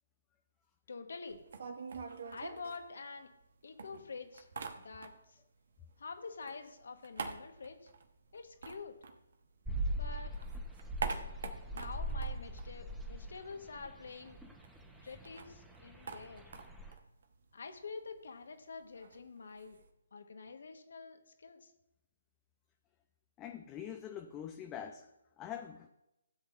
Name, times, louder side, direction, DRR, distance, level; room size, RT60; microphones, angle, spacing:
voice 1, 0.9-1.5 2.3-3.3 3.6-4.5 4.8-5.4 6.0-7.9 8.3-9.0 9.9-10.3 11.7-14.4 15.0-16.5 17.5-19.8 20.1-21.7, left 4 dB, 65° left, 7 dB, 1.3 m, -47 dB
sound 1, 1.3-3.5 3.8-5.4 5.7-9.8 10.2-13.5 13.7-13.8 14.1-19.9, right 5 dB, 60° right, 1.1 m, -46 dB
sound 2, 9.7-16.9, right 1 dB, 5° right, 1.0 m, -41 dB
voice 2, 23.4-25.1 25.4-25.9, left 9 dB, 20° left, 5 dB, 0.6 m, -44 dB
15.5 x 8.0 x 2.6 m, 0.90 s
figure-of-eight pair, 140°, 0 cm